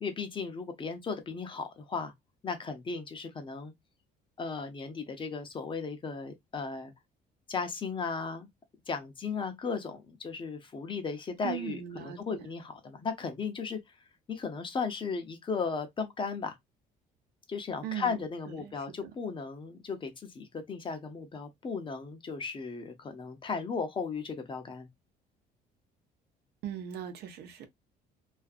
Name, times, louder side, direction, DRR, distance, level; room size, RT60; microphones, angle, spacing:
voice 1, 0.0-2.1 2.4-3.7 4.4-6.9 7.5-8.5 8.9-13.8 14.3-16.6 17.5-24.9, left 5 dB, 30° left, 0.6 m, -36 dB
voice 2, 11.4-12.5 17.8-19.1 26.6-27.7, right 10 dB, 75° right, 0.7 m, -40 dB
2.5 x 2.4 x 2.3 m
cardioid pair, 110°, 17 cm